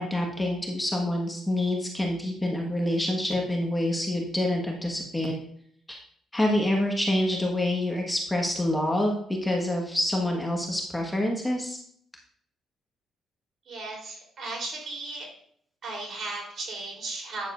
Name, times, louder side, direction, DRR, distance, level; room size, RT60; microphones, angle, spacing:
voice 1, 0.0-5.3 5.9-6.0 6.3-11.8, left 1 dB, 10° left, 0 dB, 1.5 m, -27 dB
voice 2, 13.7-15.3 15.8-17.5, right 2 dB, 55° right, -1 dB, 3.6 m, -35 dB
9.4 x 6.9 x 2.6 m, 0.64 s
cardioid pair, 90°, 0 cm